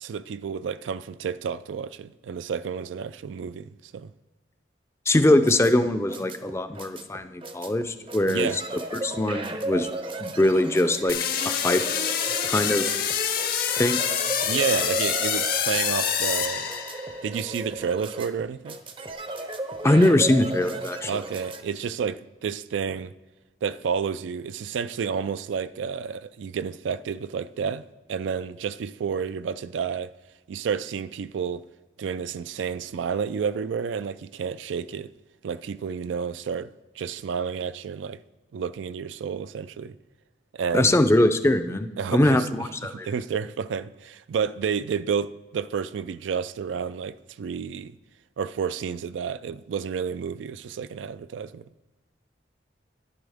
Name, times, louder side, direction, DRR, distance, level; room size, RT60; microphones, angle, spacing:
voice 1, 0.0-4.1 8.3-8.6 14.5-16.7 17.2-18.8 21.1-23.1 23.6-27.8 28.1-30.1 30.5-31.6 32.0-35.1 35.4-36.7 37.0-38.2 38.5-39.9 40.5-41.0 42.0-42.5 42.9-48.0 48.4-51.7, right 6 dB, 90° right, 0.3 m, -30 dB
voice 2, 5.1-8.6 9.0-9.9 10.2-11.2 11.4-11.8 12.4-13.0 13.8-14.0 19.8-21.2 40.7-43.1, left 1 dB, 15° left, 0.4 m, -22 dB
sound 1, 5.2-21.6, right 2 dB, 30° right, 0.6 m, -35 dB
sound 2, 11.1-17.3, left 8 dB, 55° left, 0.7 m, -26 dB
11.0 x 9.6 x 3.5 m
head